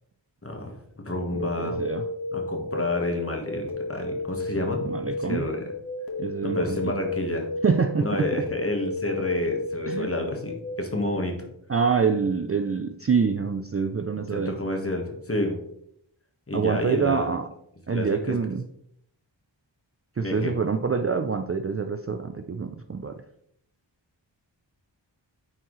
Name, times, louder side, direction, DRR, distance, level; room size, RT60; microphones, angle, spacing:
voice 1, 0.4-1.8 2.3-4.8 5.2-5.6 6.4-7.5 8.0-11.3 14.2-15.6 16.5-17.3 17.9-18.3 20.2-20.5, left 1 dB, 30° left, 2 dB, 1.5 m, -29 dB
sound 1, 1.3-10.9, left 2 dB, 50° left, 1.7 m, -33 dB
voice 2, 1.3-2.0 4.8-5.5 6.2-6.9 7.6-8.5 9.9-10.1 11.7-14.6 16.5-17.5 17.9-18.6 20.2-23.2, right 5 dB, 35° right, 7 dB, 0.4 m, -26 dB
9.4 x 4.5 x 3.2 m, 0.73 s
wide cardioid pair, 75°, 46 cm